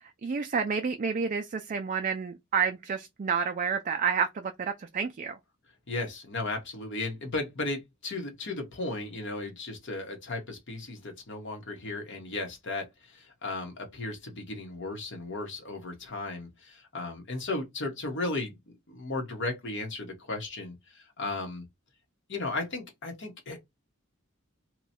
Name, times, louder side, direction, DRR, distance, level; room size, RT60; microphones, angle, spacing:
voice 1, 0.0-5.4, right 6 dB, 40° right, 0.4 m, -30 dB
voice 2, 5.9-18.5 18.9-21.6 22.3-23.6, left 2 dB, 60° left, 1.2 m, -35 dB
3.0 x 2.3 x 4.1 m
head